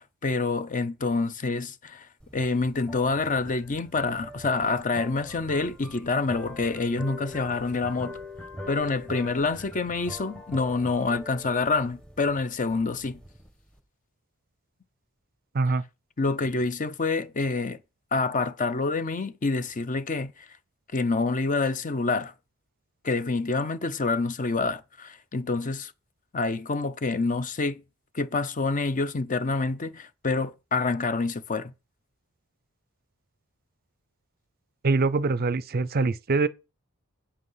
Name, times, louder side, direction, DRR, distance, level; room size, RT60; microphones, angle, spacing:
voice 1, 0.0-2.1 2.3-8.2 8.7-13.2 16.2-17.8 18.1-20.5 20.9-22.3 23.0-25.9 26.3-27.8 28.1-31.7, left 3 dB, 35° left, 0.6 m, -27 dB
sound 1, 2.2-13.8, left 1 dB, 5° left, 1.4 m, -43 dB
voice 2, 34.8-36.5, right 3 dB, 45° right, 0.5 m, -24 dB
8.5 x 8.0 x 5.6 m
head